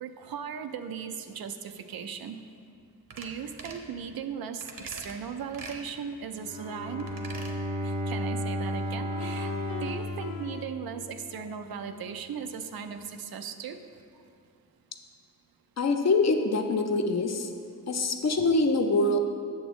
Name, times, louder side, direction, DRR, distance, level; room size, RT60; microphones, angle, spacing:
voice 1, 0.0-2.4 3.2-7.2 7.8-14.2, right 7 dB, 85° right, 8 dB, 0.5 m, -38 dB
sound 1, 3.1-3.3 3.6-3.9 4.6-5.1 5.5-5.8 7.0-7.5 7.9-8.0, right 4 dB, 65° right, 0.8 m, -43 dB
Bowed string instrument, 6.3-11.4, equal, 20° right, 0.5 m, -34 dB
sound 2, 9.1-11.1, left 8 dB, 90° left, 0.6 m, -40 dB
voice 2, 15.8-17.5 17.9-19.2, left 2 dB, 50° left, 5 dB, 0.6 m, -24 dB
8.2 x 6.9 x 3.1 m, 2.3 s
wide cardioid pair, 110°, 35 cm